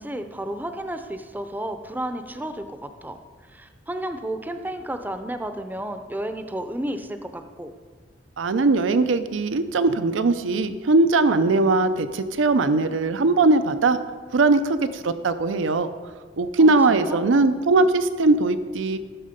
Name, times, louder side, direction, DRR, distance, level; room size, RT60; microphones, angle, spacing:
voice 1, 0.0-3.2 3.5-7.7 16.6-17.2, right 1 dB, 10° right, 8 dB, 0.6 m, -32 dB
voice 2, 8.4-14.0 14.3-15.9 16.4-19.0, right 3 dB, 80° right, 11 dB, 0.5 m, -20 dB
14.5 x 6.4 x 5.1 m, 1.5 s
head